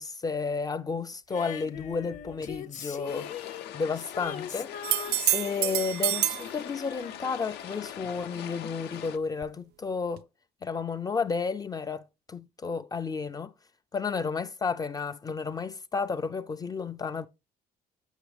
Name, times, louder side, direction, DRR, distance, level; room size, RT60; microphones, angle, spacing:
voice 1, 0.0-3.3 3.7-4.7 5.3-10.2 10.6-12.0 12.3-13.5 13.9-17.3, left 5 dB, 20° left, 0.3 m, -32 dB
Female singing, 1.3-8.3 9.4-9.5, left 8 dB, 45° left, 0.8 m, -41 dB
sound 1, 3.1-9.2, left 10 dB, 85° left, 0.6 m, -43 dB
sound 2, 4.8-6.5 10.2-10.3, right 13 dB, 75° right, 0.4 m, -27 dB
8.0 x 5.6 x 3.2 m
cardioid pair, 110°, 17 cm